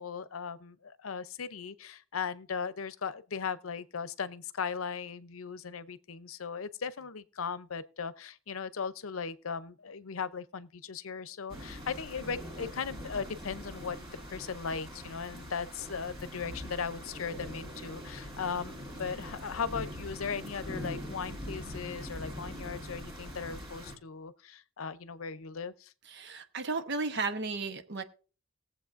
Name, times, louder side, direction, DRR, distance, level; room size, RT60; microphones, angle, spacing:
voice 1, 0.0-14.0 14.3-25.9, left 6 dB, 80° left, 0.7 m, -38 dB
sound 1, 11.5-24.0, equal, 25° right, 2.1 m, -43 dB
voice 2, 26.1-28.0, right 4 dB, 55° right, 1.0 m, -34 dB
20.0 x 7.6 x 2.6 m
head